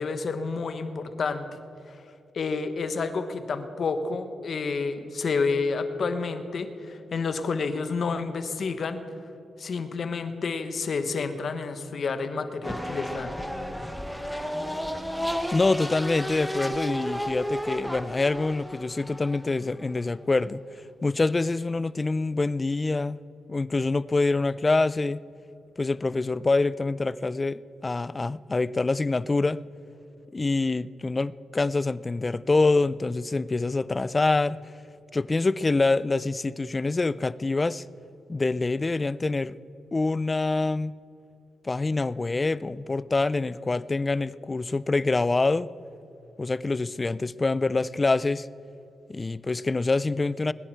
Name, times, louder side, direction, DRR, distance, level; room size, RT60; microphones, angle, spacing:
voice 1, 0.0-1.4 1.9-2.0 2.3-9.0 9.6-13.4, left 4 dB, 55° left, 9 dB, 1.1 m, -29 dB
sound 1, 12.6-20.5, equal, ahead, 0.9 m, -33 dB
voice 2, 15.5-20.6 21.0-23.2 23.5-25.2 25.8-29.6 30.3-34.6 35.1-37.8 38.3-39.5 39.9-40.9 41.6-45.7 46.4-48.5 49.1-50.5, left 3 dB, 25° left, 18 dB, 0.3 m, -25 dB
21.0 x 10.0 x 4.6 m, 2.7 s
cardioid pair, 90°, 0 cm